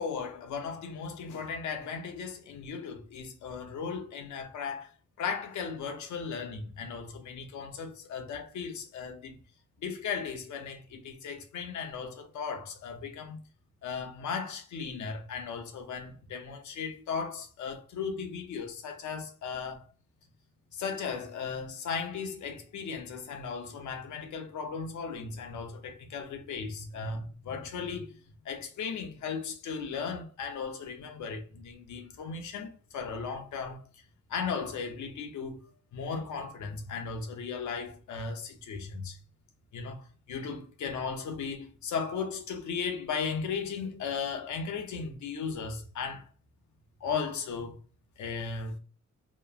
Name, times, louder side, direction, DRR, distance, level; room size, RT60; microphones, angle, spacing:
voice 1, 0.0-9.4 9.8-13.4 13.8-19.9 20.7-28.2 28.4-33.8 34.3-39.2 39.7-46.3 47.0-47.8 48.2-48.8, left 5 dB, 75° left, 0.6 m, -36 dB
2.9 x 2.1 x 2.3 m
wide cardioid pair, 155°, 29 cm